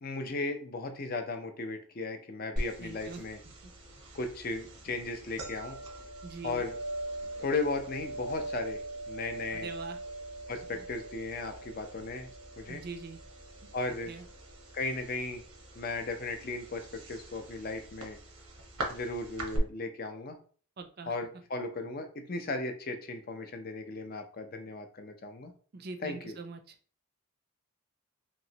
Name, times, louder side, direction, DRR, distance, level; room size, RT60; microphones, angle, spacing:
voice 1, 0.0-3.4 4.1-5.8 6.4-6.8 7.4-8.8 9.1-9.7 10.5-12.3 12.6-12.8 13.7-14.1 14.7-15.4 15.8-18.2 18.9-20.4 21.1-25.5 26.0-26.4, left 3 dB, 40° left, 6 dB, 0.5 m, -36 dB
sound 1, 2.6-19.6, right 1 dB, 80° right, 0.9 m, -42 dB
voice 2, 2.8-3.2 6.2-6.6 9.5-10.0 10.7-10.8 12.7-13.2 14.0-14.2 20.8-21.1 25.7-26.7, right 4 dB, 45° right, 6 dB, 0.4 m, -43 dB
3.0 x 2.9 x 2.7 m, 0.43 s
head